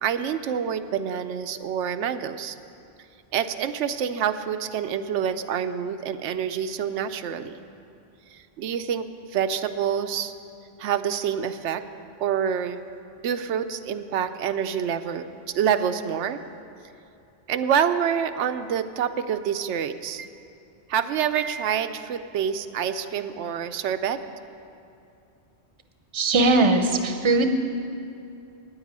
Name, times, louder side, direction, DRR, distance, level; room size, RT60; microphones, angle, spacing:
voice 1, 0.0-2.6 3.3-7.6 8.3-10.3 10.8-11.8 12.2-12.8 13.2-15.2 15.5-16.4 17.5-20.3 20.9-24.2, right 8 dB, 90° right, 9 dB, 0.9 m, -27 dB
voice 2, 26.1-27.5, right 2 dB, 30° right, 6 dB, 0.7 m, -20 dB
9.1 x 8.8 x 9.4 m, 2.6 s
omnidirectional pair, 1.2 m